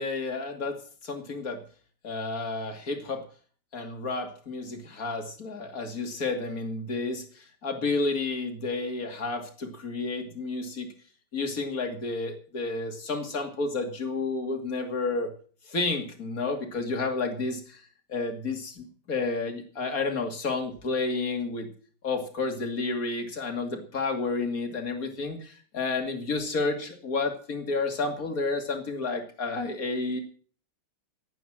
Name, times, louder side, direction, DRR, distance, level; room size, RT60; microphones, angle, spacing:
voice 1, 0.0-1.6 2.0-3.2 3.7-10.9 11.3-15.3 15.7-21.7 22.0-30.2, left 3 dB, 40° left, 5 dB, 3.0 m, -31 dB
15.0 x 9.1 x 7.5 m, 0.43 s
omnidirectional pair, 2.4 m